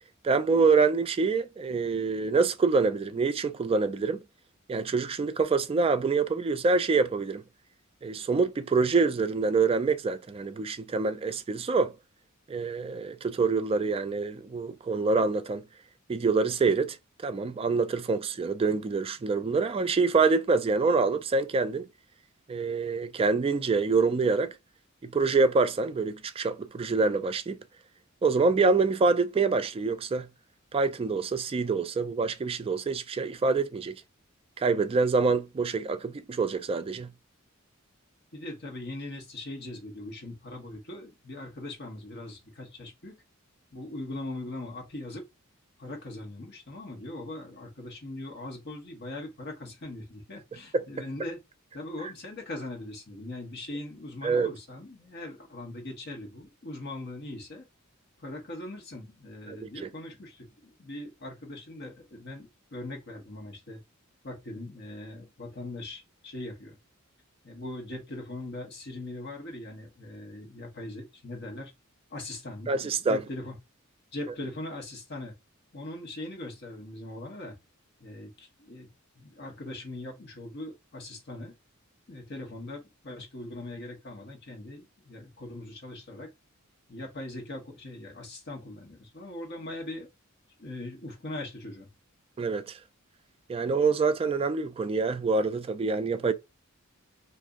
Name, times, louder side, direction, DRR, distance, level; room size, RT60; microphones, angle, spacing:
voice 1, 0.2-4.2 4.7-7.4 8.0-11.9 12.5-15.6 16.1-17.0 17.2-21.9 22.5-24.5 25.0-27.6 28.2-30.3 30.7-34.0 34.6-37.1 50.7-50.8 54.2-54.5 59.5-59.9 72.7-73.2 92.4-92.8 93.5-96.3, right 4 dB, 25° right, 0.3 m, -26 dB
voice 2, 38.3-43.1 43.7-45.3 45.8-51.4 51.7-57.7 58.2-63.8 64.2-66.8 67.4-71.7 72.1-73.6 74.1-75.3 75.7-77.6 78.0-78.9 79.1-81.5 82.1-86.3 86.9-90.1 90.6-91.9, left 2 dB, 55° left, 1.2 m, -40 dB
2.6 x 2.6 x 3.5 m
head